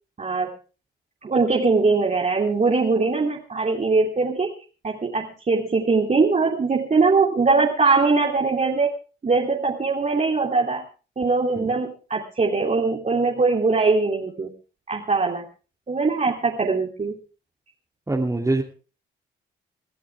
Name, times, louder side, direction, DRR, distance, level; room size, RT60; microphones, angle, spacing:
voice 1, 0.2-0.5 1.2-4.5 4.8-8.9 9.2-10.9 11.2-14.5 14.9-15.4 15.9-17.2, right 4 dB, 35° right, -1 dB, 3.2 m, -21 dB
voice 2, 18.1-18.6, right 2 dB, 15° right, 0 dB, 2.7 m, -23 dB
23.0 x 14.0 x 3.6 m, 0.36 s
supercardioid pair, 60°, 20 cm